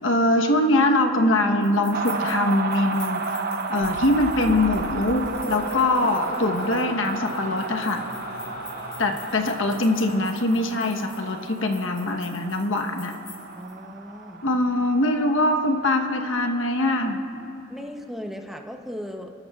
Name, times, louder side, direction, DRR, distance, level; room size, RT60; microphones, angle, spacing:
voice 1, 0.0-3.4 3.7-8.0 9.0-13.1 14.4-17.2, left 1 dB, 75° left, 3 dB, 1.0 m, -23 dB
sound 1, 1.6-13.7, left 4 dB, 30° left, 3.6 m, -47 dB
sound 2, 1.9-16.4, right 4 dB, 50° right, 0.7 m, -33 dB
sound 3, 3.8-11.2, left 1 dB, 50° left, 2.3 m, -37 dB
voice 2, 13.6-14.4 17.7-19.3, equal, ahead, 3 dB, 0.7 m, -37 dB
29.0 x 12.5 x 2.4 m, 2.7 s
head